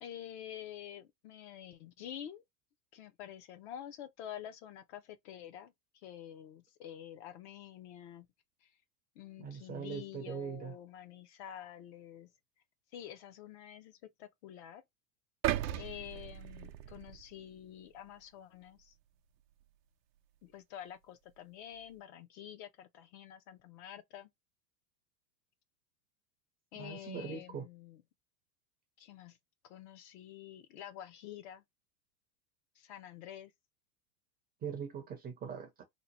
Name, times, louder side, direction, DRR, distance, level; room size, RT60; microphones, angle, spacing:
voice 1, 0.0-2.4 2.9-5.7 6.0-8.3 8.6-8.7 9.2-12.3 12.9-14.8 15.7-18.9 20.4-24.3 26.7-28.0 29.0-29.4 29.6-31.6 32.8-33.5, left 10 dB, 45° left, 0.5 m, -48 dB
voice 2, 9.4-10.7 26.8-27.6 34.6-35.8, right 7 dB, 20° right, 0.5 m, -41 dB
sound 1, 15.4-17.6 18.1-18.2, right 13 dB, 85° right, 0.6 m, -36 dB
2.9 x 2.1 x 4.0 m
supercardioid pair, 125°, 49 cm